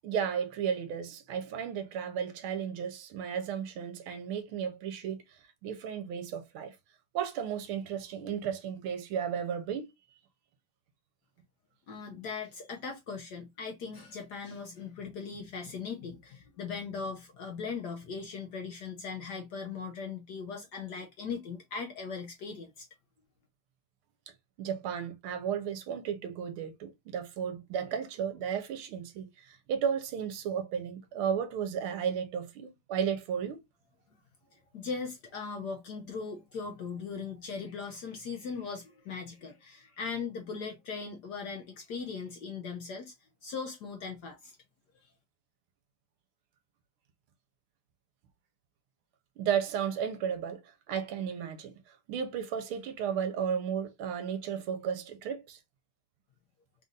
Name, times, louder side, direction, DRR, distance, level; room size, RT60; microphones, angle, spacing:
voice 1, 0.0-6.7 7.1-9.9 24.6-33.6 49.4-55.6, right 8 dB, 75° right, 1.6 m, -34 dB
voice 2, 11.9-22.9 34.5-43.1 43.4-44.5, left 5 dB, 65° left, 1.0 m, -39 dB
4.0 x 2.5 x 3.8 m
omnidirectional pair, 2.4 m